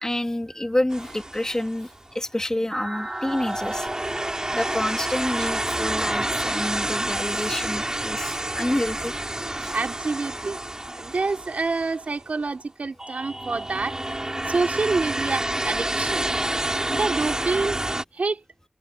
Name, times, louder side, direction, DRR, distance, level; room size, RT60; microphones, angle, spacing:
voice 1, 0.0-1.9 2.1-3.9 4.5-9.1 9.6-9.8, left 1 dB, 25° left, 2.1 m, -28 dB
sound 1, 0.9-1.9 2.7-12.2 13.0-18.0, right 1 dB, 30° right, 2.3 m, -29 dB
voice 2, 9.7-10.6 11.0-14.0 14.5-16.3 16.9-17.8 18.1-18.4, right 3 dB, 85° right, 3.3 m, -27 dB
wide cardioid pair, 45°, 2 cm